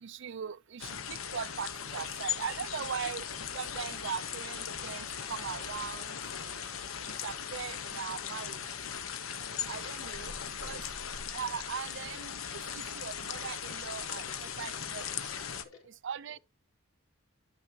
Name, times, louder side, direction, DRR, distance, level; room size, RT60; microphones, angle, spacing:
voice 1, 0.0-3.2 3.5-6.6 7.2-8.6 9.7-10.3 10.6-10.8 11.3-15.3 16.0-16.4, right 7 dB, 55° right, 0.4 m, -40 dB
sound 1, 0.8-15.6, left 7 dB, 70° left, 1.1 m, -38 dB
voice 2, 9.8-11.0 13.6-13.7 14.2-16.4, left 4 dB, 85° left, 4.3 m, -61 dB
12.0 x 6.1 x 2.8 m
head